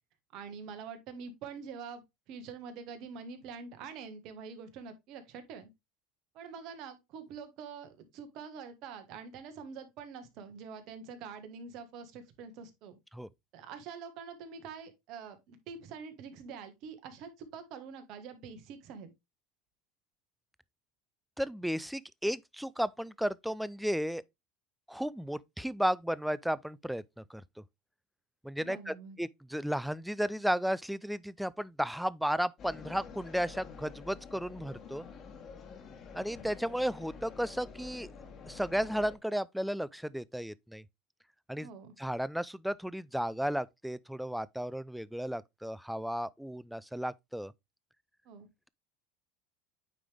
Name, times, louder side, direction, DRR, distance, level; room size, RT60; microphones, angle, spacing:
voice 1, 0.3-5.7 6.3-13.0 13.5-19.1 28.6-29.2 41.6-41.9 48.2-48.5, right 6 dB, 60° right, 1.4 m, -45 dB
voice 2, 21.4-24.2 24.9-27.4 28.4-35.1 36.1-38.1 38.5-40.8 41.5-41.7 42.0-47.5, equal, ahead, 0.4 m, -34 dB
sound 1, 32.6-39.2, left 5 dB, 40° left, 1.4 m, -48 dB
9.1 x 3.3 x 3.4 m
supercardioid pair, 100°, 0 cm